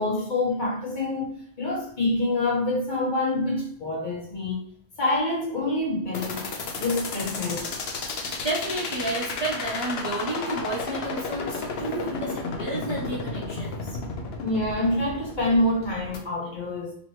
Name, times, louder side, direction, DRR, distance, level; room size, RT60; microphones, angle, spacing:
voice 1, 0.0-4.7 5.0-6.5 6.8-7.7 14.4-16.9, left 2 dB, 45° left, 1.2 m, -26 dB
sound 1, 6.1-16.2, left 4 dB, 70° left, 0.9 m, -32 dB
voice 2, 8.4-14.0, right 2 dB, 30° right, 0.6 m, -31 dB
4.1 x 2.9 x 3.1 m
omnidirectional pair, 1.1 m